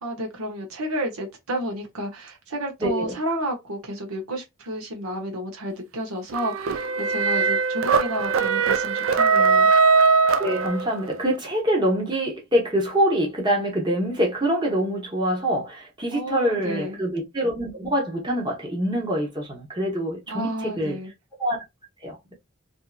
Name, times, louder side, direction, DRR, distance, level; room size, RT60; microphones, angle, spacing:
voice 1, 0.0-9.7 16.1-17.0 20.3-21.1, right 1 dB, 90° right, 0.9 m, -31 dB
voice 2, 2.8-3.1 10.4-21.0 21.4-21.6 22.0-22.3, right 1 dB, 20° right, 0.9 m, -25 dB
sound 1, 6.3-11.1, right 5 dB, 65° right, 0.4 m, -20 dB
2.7 x 2.6 x 2.3 m
head